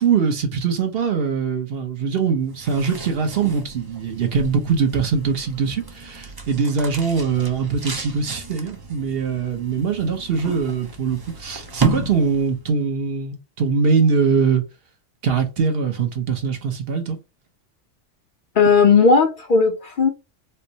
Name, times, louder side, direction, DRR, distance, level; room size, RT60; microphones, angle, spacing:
voice 1, 0.0-14.6 15.2-17.2, right 5 dB, 55° right, 0.9 m, -22 dB
sound 1, 2.4-12.8, right 4 dB, 30° right, 0.4 m, -33 dB
voice 2, 18.6-20.1, left 5 dB, 55° left, 0.6 m, -15 dB
4.4 x 2.0 x 2.7 m
omnidirectional pair, 1.3 m